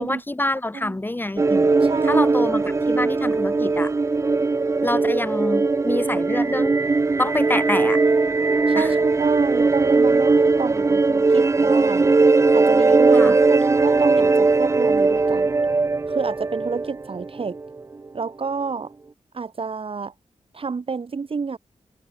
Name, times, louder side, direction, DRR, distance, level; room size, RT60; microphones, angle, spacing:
voice 1, 0.0-1.7 2.0-3.9 4.8-6.8 7.2-8.0 8.7-8.9 13.1-13.3, left 1 dB, 15° left, 1.0 m, -26 dB
sound 1, 1.4-17.8, right 3 dB, 25° right, 0.4 m, -19 dB
voice 2, 1.8-2.4 8.7-12.1 12.5-15.5 16.1-17.6 18.1-18.9 19.3-20.1 20.5-21.6, right 5 dB, 50° right, 1.4 m, -29 dB
wide cardioid pair, 145°, 12 cm